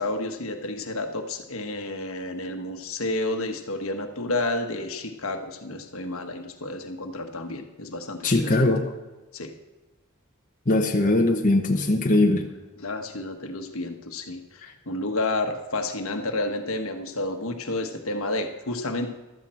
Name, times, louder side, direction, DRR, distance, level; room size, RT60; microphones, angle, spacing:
voice 1, 0.0-8.7 9.3-9.5 12.8-19.1, left 2 dB, 70° left, 5 dB, 1.4 m, -30 dB
voice 2, 8.2-8.9 10.7-12.5 14.6-14.7, left 2 dB, 40° left, 1 dB, 1.1 m, -21 dB
15.0 x 13.0 x 4.4 m, 1.1 s
head